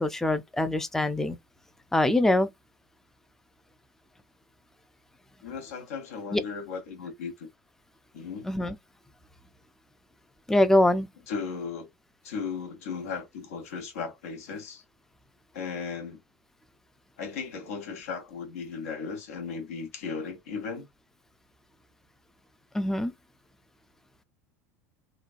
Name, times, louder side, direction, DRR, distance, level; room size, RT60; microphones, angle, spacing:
voice 1, 0.0-1.4 1.9-2.5 6.3-6.4 8.4-8.8 10.5-11.1 22.7-23.1, left 1 dB, 5° left, 0.4 m, -23 dB
voice 2, 5.4-7.5 8.1-8.5 11.3-11.9 12.2-14.8 15.5-16.2 17.2-20.9, left 5 dB, 70° left, 1.0 m, -36 dB
3.1 x 2.2 x 2.5 m
hypercardioid pair, 80°, 8 cm